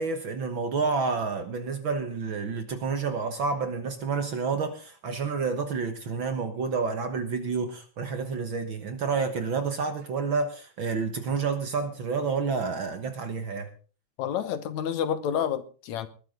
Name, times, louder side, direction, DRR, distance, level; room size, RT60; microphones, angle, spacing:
voice 1, 0.0-13.7, right 5 dB, 50° right, 1.7 m, -29 dB
voice 2, 14.2-16.1, left 9 dB, 70° left, 2.3 m, -29 dB
20.5 x 12.0 x 3.8 m
omnidirectional pair, 3.4 m